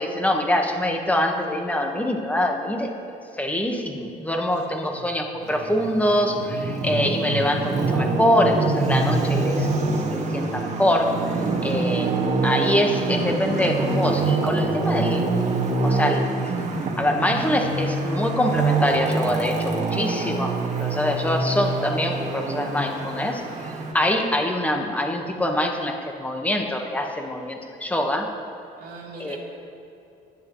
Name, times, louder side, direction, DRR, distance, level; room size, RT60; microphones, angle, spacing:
voice 1, 0.0-2.9 3.4-11.2 11.6-12.1 12.4-15.3 15.8-16.5 17.0-28.3 29.2-29.4, left 1 dB, 10° left, 2 dB, 1.4 m, -24 dB
Traffic noise roadway noise, 5.4-23.9, right 3 dB, 45° right, 1.9 m, -25 dB
voice 2, 11.7-12.4 28.8-29.4, right 4 dB, 60° right, -4 dB, 3.5 m, -43 dB
20.5 x 10.5 x 3.2 m, 2.8 s
cardioid pair, 110°, 17 cm